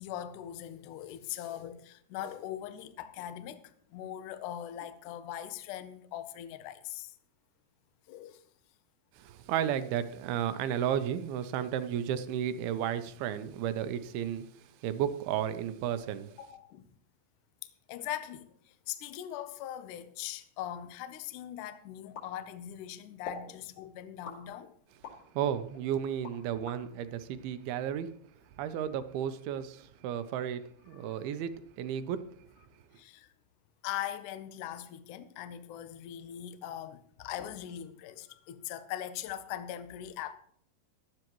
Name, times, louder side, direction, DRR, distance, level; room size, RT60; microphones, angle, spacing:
voice 1, 0.0-7.2 8.1-8.4 16.4-16.9 17.6-24.7 30.9-31.2 32.9-33.3 33.8-40.3, left 11 dB, 80° left, 1.8 m, -41 dB
voice 2, 9.2-16.3 25.3-28.1 28.6-32.2, right 9 dB, 80° right, 2.5 m, -33 dB
sound 1, 22.1-22.8 23.2-23.5 24.2-25.2 25.7-26.8, left 5 dB, 50° left, 3.6 m, -44 dB
17.5 x 11.5 x 3.0 m
omnidirectional pair, 4.6 m